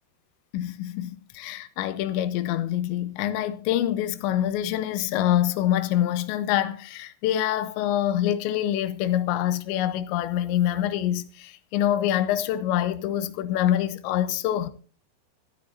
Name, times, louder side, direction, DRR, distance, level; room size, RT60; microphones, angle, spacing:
voice 1, 0.5-14.7, left 12 dB, 90° left, 3.1 m, -25 dB
25.5 x 10.0 x 2.6 m
omnidirectional pair, 5.1 m